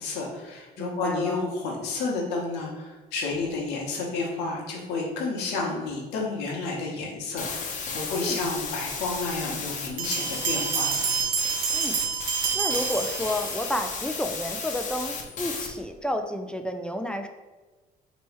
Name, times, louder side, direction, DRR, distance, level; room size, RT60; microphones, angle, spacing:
voice 1, 0.0-11.1, left 3 dB, 90° left, -2 dB, 1.1 m, -31 dB
voice 2, 0.8-1.4 8.1-8.5 11.7-12.0 12.5-17.3, left 1 dB, 5° left, 6 dB, 0.3 m, -31 dB
sound 1, 7.4-15.7, left 5 dB, 50° left, 0.8 m, -34 dB
sound 2, 10.0-13.8, right 7 dB, 55° right, 0.6 m, -28 dB
3.0 x 3.0 x 4.5 m, 1.3 s
cardioid pair, 110°, 17 cm